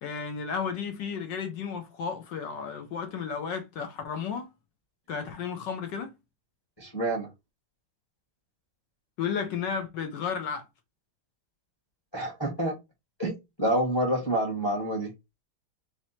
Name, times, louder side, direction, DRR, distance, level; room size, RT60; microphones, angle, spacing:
voice 1, 0.0-4.5 5.1-6.1 9.2-10.6, left 6 dB, 70° left, 1.2 m, -33 dB
voice 2, 6.8-7.3 12.1-12.7 13.2-13.3 13.6-15.1, right 1 dB, 15° left, 0.9 m, -27 dB
3.3 x 3.3 x 4.2 m
omnidirectional pair, 2.3 m